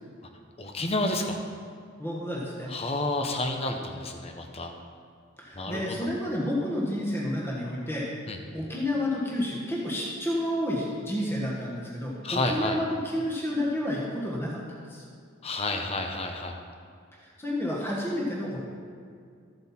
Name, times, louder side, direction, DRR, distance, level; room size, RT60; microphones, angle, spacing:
voice 1, 0.6-1.4 2.7-4.7 5.5-5.9 8.3-8.4 12.2-12.8 15.4-16.6, left 2 dB, 30° left, 4 dB, 0.9 m, -30 dB
voice 2, 2.0-2.7 5.4-8.1 8.5-12.8 13.1-15.0 17.2-18.6, left 1 dB, 10° left, -4 dB, 1.4 m, -30 dB
13.5 x 7.8 x 4.4 m, 2.2 s
head